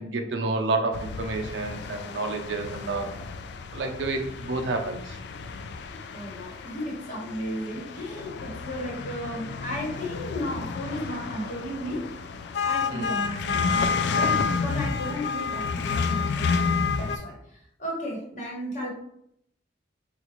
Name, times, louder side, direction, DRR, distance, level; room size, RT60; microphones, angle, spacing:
voice 1, 0.0-3.1 3.7-5.2 12.9-13.1, right 3 dB, 70° right, 4 dB, 0.5 m, -29 dB
sound 1, 0.9-17.2, left 5 dB, 65° left, 0.3 m, -30 dB
voice 2, 5.8-12.2 12.6-13.6 14.0-16.6 17.0-18.9, equal, 45° left, -3 dB, 1.2 m, -34 dB
3.8 x 2.4 x 3.0 m, 0.72 s
head